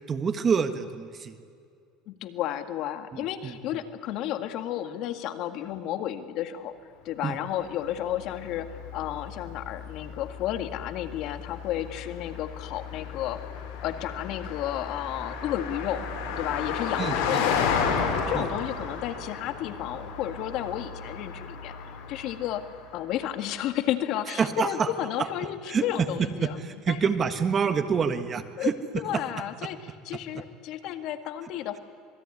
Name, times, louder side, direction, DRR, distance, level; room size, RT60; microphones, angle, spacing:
voice 1, 0.1-1.4 3.1-3.6 7.2-7.4 17.0-17.4 18.3-18.5 24.4-24.9 25.7-25.8 26.2-28.7, right 6 dB, 25° right, 9 dB, 1.6 m, -27 dB
voice 2, 2.1-6.7 7.1-13.4 13.8-22.7 22.9-27.0 28.6-28.7 29.0-31.8, left 11 dB, 55° left, 8 dB, 1.9 m, -32 dB
Car passing by, 7.3-23.0, left 6 dB, 80° left, 5.8 m, -33 dB
26.5 x 20.5 x 9.8 m, 2.3 s
cardioid pair, 140°, 0 cm